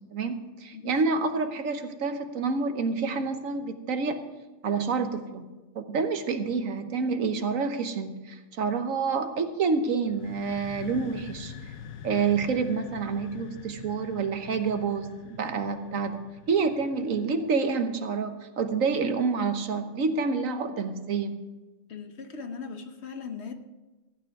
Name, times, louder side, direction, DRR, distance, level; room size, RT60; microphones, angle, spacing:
voice 1, 0.1-4.3 4.6-5.5 5.7-11.5 12.0-16.2 16.5-21.4, right 4 dB, 75° right, 8 dB, 1.4 m, -28 dB
sound 1, 10.0-17.7, left 7 dB, 80° left, 1.3 m, -45 dB
voice 2, 21.9-23.5, left 5 dB, 55° left, 7 dB, 1.2 m, -39 dB
15.0 x 9.5 x 4.7 m, 1.2 s
omnidirectional pair, 1.4 m